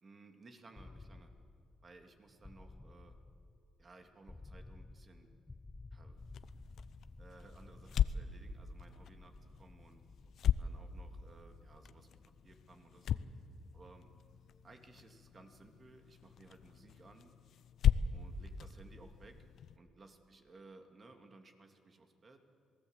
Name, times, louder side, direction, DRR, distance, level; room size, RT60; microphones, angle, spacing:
voice 1, 0.0-1.3 1.8-3.2 3.8-5.3 5.9-6.2 7.2-10.0 10.6-13.2 13.7-14.1 14.6-17.3 18.1-19.4 19.7-22.4, right 3 dB, 35° right, 5 dB, 2.7 m, -59 dB
sound 1, 0.8-16.6, left 2 dB, 20° left, 0.9 m, -56 dB
sound 2, 6.2-19.8, left 9 dB, 65° left, 0.7 m, -38 dB
27.0 x 18.5 x 8.2 m, 2.5 s
cardioid pair, 90°, 0 cm